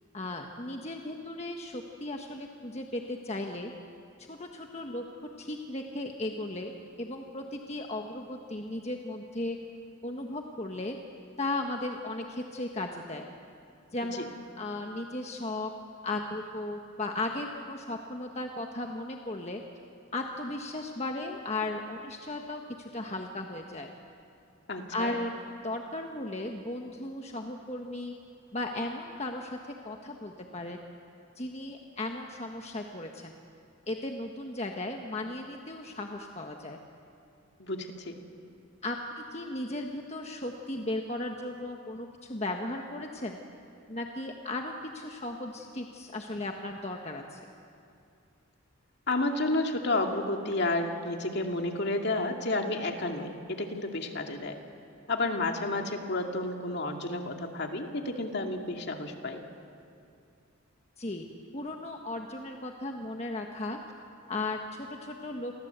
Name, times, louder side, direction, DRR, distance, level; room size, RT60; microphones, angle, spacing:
voice 1, 0.1-3.7 4.3-5.0 5.4-6.7 7.0-9.6 10.0-11.0 11.4-13.3 13.9-15.7 16.0-19.6 20.1-23.9 24.9-28.1 28.5-29.6 29.8-30.8 31.3-33.3 33.9-36.8 38.8-43.4 43.9-47.4 61.0-61.3 61.5-63.8 64.3-65.5, left 2 dB, 30° left, 2 dB, 1.4 m, -36 dB
voice 2, 24.7-25.1 37.6-38.2 49.1-54.6 55.1-59.4, left 2 dB, 50° left, 3 dB, 2.4 m, -31 dB
30.0 x 23.5 x 8.1 m, 2.5 s
head